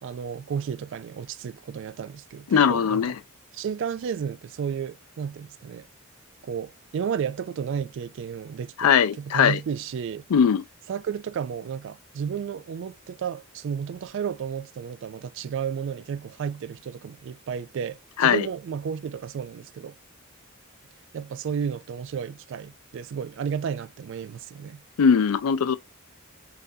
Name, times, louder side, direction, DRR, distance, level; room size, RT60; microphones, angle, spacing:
voice 1, 0.0-3.1 3.5-5.9 6.4-10.3 10.9-19.9 21.1-24.8, right 7 dB, 60° right, 0.3 m, -32 dB
voice 2, 2.5-3.1 8.8-9.6 10.3-10.6 18.2-18.5 25.0-25.8, left 7 dB, 85° left, 0.4 m, -20 dB
4.0 x 2.5 x 2.7 m
head